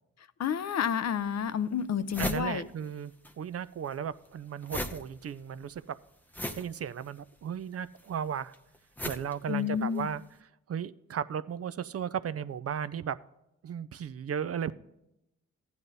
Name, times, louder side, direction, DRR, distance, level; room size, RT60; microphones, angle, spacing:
voice 1, 0.4-2.7 9.5-10.1, left 8 dB, 50° left, 0.6 m, -30 dB
sound 1, 0.8-0.9 1.5-1.6 1.8-3.3 3.6-10.2, left 1 dB, 5° left, 0.8 m, -39 dB
voice 2, 2.2-6.0 6.5-8.5 9.0-10.2 10.7-13.2 13.6-14.7, right 8 dB, 45° right, 0.4 m, -35 dB
14.5 x 9.5 x 2.7 m
supercardioid pair, 45°, 34 cm